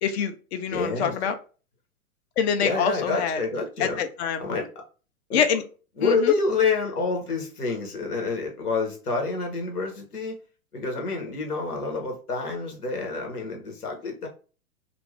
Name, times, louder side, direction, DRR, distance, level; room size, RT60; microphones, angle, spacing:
voice 1, 0.0-1.3 2.4-3.4 3.8-4.4 5.3-5.6 6.0-6.3, left 7 dB, 45° left, 0.6 m, -25 dB
voice 2, 0.7-1.1 2.6-4.0 4.4-4.7 5.3-5.4 6.0-10.4 10.7-14.3, left 4 dB, 80° left, 1.2 m, -27 dB
2.5 x 2.5 x 3.3 m
figure-of-eight pair, 105°, 45 cm